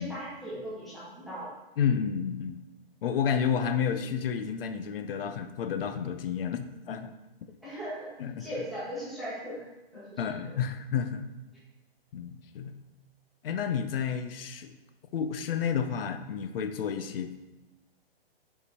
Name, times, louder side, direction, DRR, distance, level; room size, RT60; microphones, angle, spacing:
voice 1, 0.0-1.5 7.6-8.1 8.4-9.6 9.9-10.3, equal, ahead, -11 dB, 1.6 m, -38 dB
voice 2, 1.8-2.6 3.0-7.1 8.2-8.5 10.2-11.3 12.1-12.8 13.4-14.8 15.1-17.3, left 7 dB, 65° left, 9 dB, 0.7 m, -30 dB
5.5 x 5.0 x 4.1 m, 1.0 s
hypercardioid pair, 155°, 31 cm